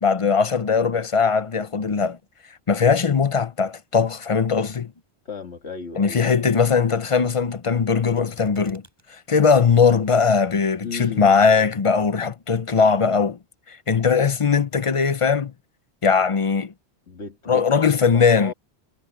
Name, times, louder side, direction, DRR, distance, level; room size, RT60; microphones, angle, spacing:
voice 1, 0.0-2.2 2.7-4.9 6.0-8.8 9.1-13.4 13.7-15.5 16.0-16.7 17.5-18.5, left 5 dB, 35° left, 0.6 m, -20 dB
voice 2, 5.3-6.5 10.8-11.5 17.1-17.7 18.1-18.5, left 5 dB, 80° left, 2.3 m, -35 dB
sound 1, 8.1-9.0 9.3-9.4 10.0-10.5 11.0-11.1, equal, 15° right, 6.8 m, -51 dB
omnidirectional pair, 1.1 m